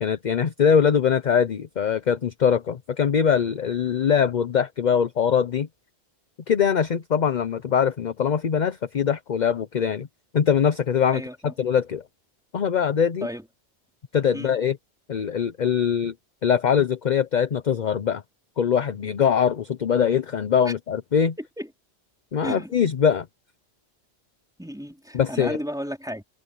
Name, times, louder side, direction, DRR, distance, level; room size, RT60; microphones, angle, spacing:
voice 1, 0.0-5.7 6.5-10.1 10.3-12.0 12.5-13.3 14.1-14.8 15.1-16.1 16.4-18.2 18.6-21.3 22.3-23.3 25.1-25.6, left 7 dB, 50° left, 0.8 m, -22 dB
voice 2, 11.1-11.6 13.2-13.4 14.3-14.5 20.7-20.8 21.6-21.7 22.4-22.7 24.6-26.2, equal, 5° right, 3.9 m, -33 dB
omnidirectional pair, 1.1 m